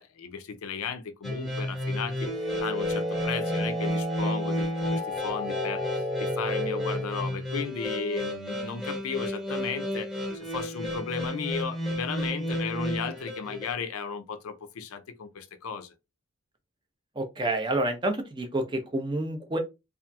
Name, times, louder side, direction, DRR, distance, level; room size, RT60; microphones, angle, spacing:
voice 1, 0.0-15.9, left 6 dB, 85° left, 0.4 m, -35 dB
sound 1, 1.2-13.7, left 1 dB, ahead, 1.0 m, -32 dB
sound 2, 2.2-7.2, left 1 dB, 70° right, 0.9 m, -33 dB
voice 2, 17.2-19.6, right 1 dB, 20° right, 0.5 m, -28 dB
2.8 x 2.4 x 2.2 m
head